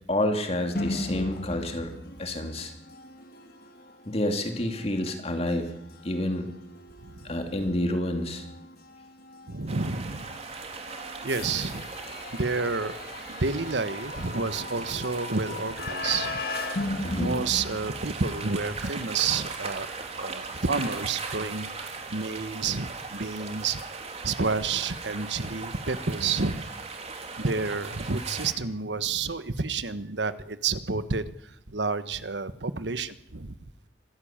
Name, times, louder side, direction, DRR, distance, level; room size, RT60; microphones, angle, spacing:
voice 1, 0.1-1.9 2.2-2.7 4.1-5.7 6.0-6.5 7.2-8.5 16.0-16.2 17.0-17.4, left 1 dB, 35° left, 5 dB, 2.9 m, -29 dB
sound 1, 0.7-18.5, left 2 dB, 60° left, 2.0 m, -38 dB
voice 2, 7.0-7.4 9.5-10.4 11.2-11.8 12.3-12.9 13.3-16.4 17.2-19.9 20.1-23.8 24.2-26.7 27.4-33.5, right 4 dB, 85° right, 13 dB, 1.3 m, -30 dB
sound 2, 9.7-28.5, right 4 dB, 40° right, 3.2 m, -38 dB
25.0 x 16.0 x 8.9 m, 0.78 s
head